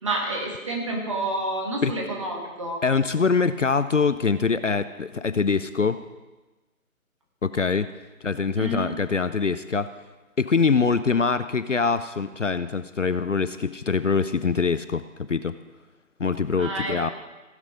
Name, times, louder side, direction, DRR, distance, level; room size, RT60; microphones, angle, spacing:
voice 1, 0.0-2.8 8.6-8.9 16.6-17.1, right 2 dB, 20° right, 0 dB, 1.6 m, -29 dB
voice 2, 2.8-6.0 7.4-7.9 8.2-9.9 10.4-15.6 16.2-17.1, left 5 dB, 60° left, 13 dB, 0.6 m, -24 dB
16.0 x 8.2 x 5.1 m, 1.2 s
figure-of-eight pair, 155°, 43 cm